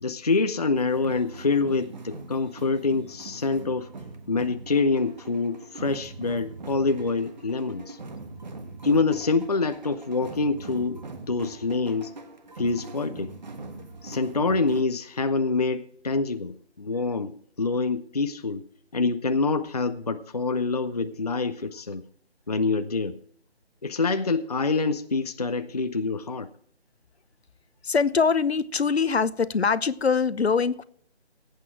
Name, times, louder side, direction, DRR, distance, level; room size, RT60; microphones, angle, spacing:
voice 1, 0.0-3.9 4.3-8.0 8.8-11.0 11.3-12.1 12.6-13.3 14.0-18.6 18.9-22.0 22.5-23.2 23.8-26.5, left 3 dB, 35° left, 0.6 m, -26 dB
sound 1, 0.8-14.8, right 3 dB, 40° right, 1.5 m, -42 dB
voice 2, 27.8-30.8, left 5 dB, 65° left, 0.8 m, -23 dB
17.5 x 8.4 x 4.5 m
figure-of-eight pair, 160°, 34 cm